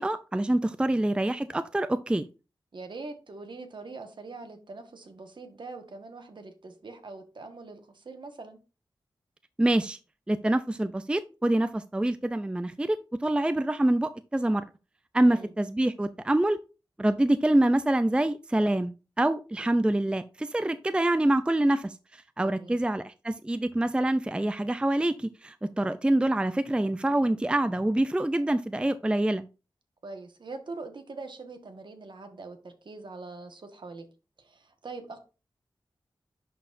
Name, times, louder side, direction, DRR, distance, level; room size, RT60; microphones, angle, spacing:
voice 1, 0.0-2.3 9.6-10.0 10.3-14.6 15.1-16.6 17.0-29.4, right 1 dB, 10° right, 12 dB, 0.4 m, -26 dB
voice 2, 2.7-8.6 15.2-15.5 22.4-22.8 30.0-34.1 34.4-35.2, right 3 dB, 60° right, 6 dB, 1.4 m, -43 dB
11.0 x 4.2 x 2.6 m, 0.31 s
wide cardioid pair, 70°, 9 cm